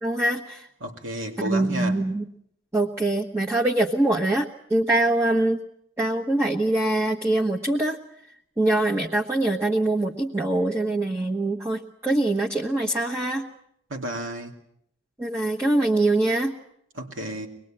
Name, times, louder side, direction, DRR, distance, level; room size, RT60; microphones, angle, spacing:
voice 1, 0.0-0.7 1.4-2.3 2.7-5.6 6.0-8.0 8.6-13.5 15.2-16.5, right 2 dB, 15° right, -2 dB, 1.3 m, -23 dB
voice 2, 0.8-2.0 13.9-14.6 16.9-17.5, right 1 dB, 80° right, 2 dB, 2.7 m, -32 dB
24.0 x 20.5 x 8.9 m, 0.73 s
head